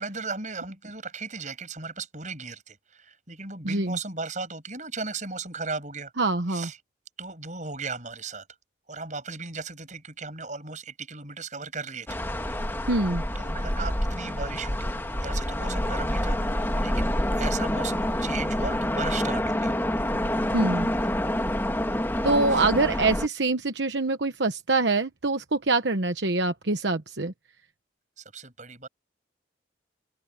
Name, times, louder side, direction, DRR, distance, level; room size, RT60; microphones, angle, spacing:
voice 1, 0.0-6.1 6.5-6.8 7.2-8.5 8.9-12.2 13.3-19.7 22.5-22.6 28.2-28.9, right 4 dB, 40° right, 7.4 m, -36 dB
voice 2, 3.6-4.0 6.2-6.7 12.9-13.2 20.5-20.9 22.2-27.3, right 3 dB, 75° right, 1.1 m, -25 dB
sound 1, 12.1-23.3, left 1 dB, 10° left, 2.0 m, -27 dB
open air
head